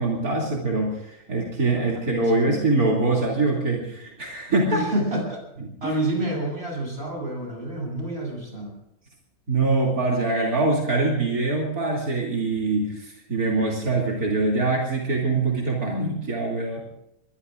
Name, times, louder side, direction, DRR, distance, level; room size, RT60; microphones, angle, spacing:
voice 1, 0.0-4.8 5.8-5.9 9.5-16.8, right 3 dB, 85° right, -2 dB, 3.4 m, -24 dB
voice 2, 1.8-2.7 4.7-5.4 5.8-8.7, right 1 dB, 45° right, -1 dB, 8.5 m, -29 dB
23.5 x 22.5 x 2.6 m, 0.83 s
omnidirectional pair, 1.5 m